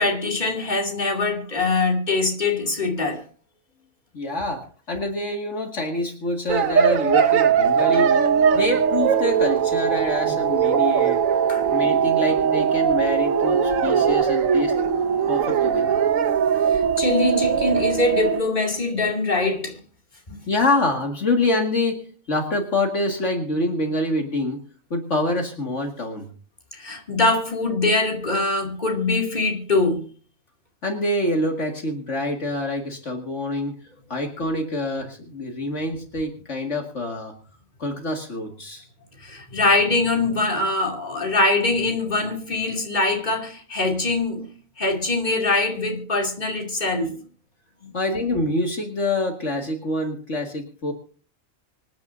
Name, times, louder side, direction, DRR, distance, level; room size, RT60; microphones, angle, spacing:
voice 1, 0.0-3.2 7.9-8.0 10.2-10.4 11.5-11.7 16.7-19.8 20.3-20.4 26.7-30.1 39.2-47.2, left 2 dB, 35° left, 2.8 m, -23 dB
voice 2, 4.1-8.1 8.5-11.2 11.7-14.7 15.3-15.9 20.5-22.0 22.3-24.6 24.9-26.3 30.8-33.7 34.1-37.3 37.8-38.8 47.9-50.9, left 2 dB, 65° left, 2.4 m, -26 dB
sound 1, 6.5-18.4, right 7 dB, 90° right, 1.3 m, -20 dB
26.0 x 10.5 x 2.6 m
omnidirectional pair, 1.3 m